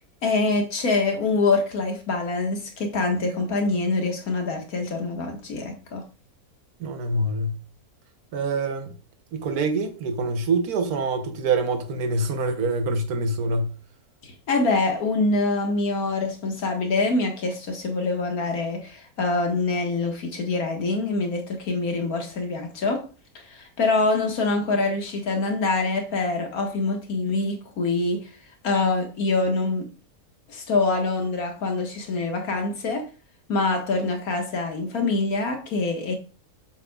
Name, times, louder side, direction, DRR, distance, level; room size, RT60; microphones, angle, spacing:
voice 1, 0.2-6.0 14.2-23.1 23.4-28.3 28.6-29.9 30.5-33.1 33.5-36.1, left 3 dB, 75° left, 2.0 m, -25 dB
voice 2, 6.8-7.6 8.3-9.0 9.3-13.7, right 3 dB, 85° right, 1.5 m, -25 dB
7.7 x 7.5 x 2.3 m
omnidirectional pair, 1.5 m